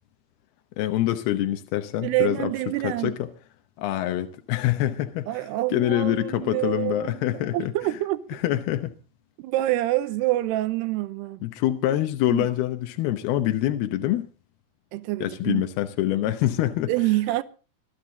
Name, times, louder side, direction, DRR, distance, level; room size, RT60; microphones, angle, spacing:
voice 1, 0.8-2.5 2.8-3.3 3.8-8.0 8.3-8.9 11.4-14.3 15.2-16.9, left 13 dB, 80° left, 2.9 m, -25 dB
voice 2, 2.0-3.2 5.3-8.2 9.4-11.4 12.3-12.5 14.9-15.6 16.9-17.4, right 16 dB, 90° right, 2.9 m, -26 dB
21.0 x 13.0 x 4.0 m
omnidirectional pair, 4.6 m